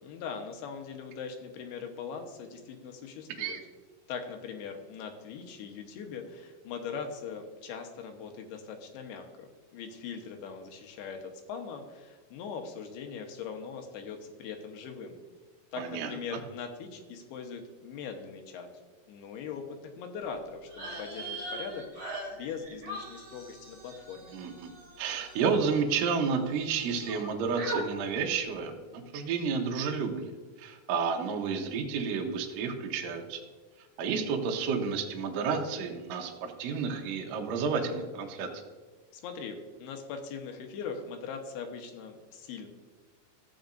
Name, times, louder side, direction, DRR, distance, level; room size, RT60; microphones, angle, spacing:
voice 1, 0.0-3.6 4.1-15.2 15.7-18.7 19.1-24.4 39.1-42.7, left 6 dB, 80° left, 5 dB, 3.0 m, -41 dB
voice 2, 15.8-16.1 24.3-24.7 25.0-30.3 30.6-33.4 34.0-38.5, right 5 dB, 75° right, 2 dB, 2.3 m, -31 dB
sound 1, 20.7-26.3 26.5-27.3 27.6-27.8, right 2 dB, 35° right, 3.3 m, -41 dB
14.5 x 8.5 x 2.6 m, 1.4 s
omnidirectional pair, 4.6 m